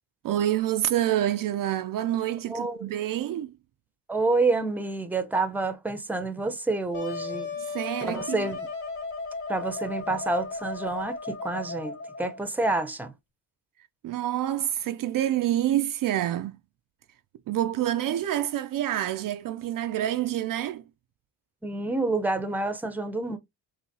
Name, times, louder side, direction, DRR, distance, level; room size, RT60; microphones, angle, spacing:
voice 1, 0.2-3.5 7.6-8.5 14.0-16.6 17.5-20.8, right 12 dB, 55° right, 0.5 m, -27 dB
voice 2, 2.5-2.9 4.1-7.5 8.0-8.6 9.5-13.1 21.6-23.4, right 3 dB, 5° right, 0.7 m, -28 dB
Wind instrument woodwind instrument, 6.9-12.4, left 3 dB, 45° left, 2.4 m, -35 dB
5.5 x 2.9 x 2.8 m
cardioid pair, 85°, 41 cm